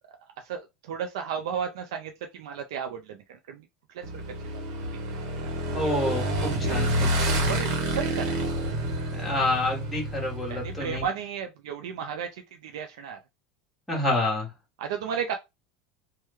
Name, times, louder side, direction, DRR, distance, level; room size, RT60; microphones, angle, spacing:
voice 1, 0.4-3.6 3.9-4.0 4.5-4.6 5.4-5.8 7.5-9.1 10.5-13.2 14.8-15.4, right 7 dB, 90° right, 0.4 m, -34 dB
Motorcycle / Engine, 4.0-11.1, right 1 dB, 65° right, 0.9 m, -28 dB
voice 2, 5.7-7.5 9.1-11.0 13.9-14.5, left 2 dB, ahead, 1.1 m, -28 dB
3.1 x 2.1 x 3.3 m
supercardioid pair, 170°, 3 cm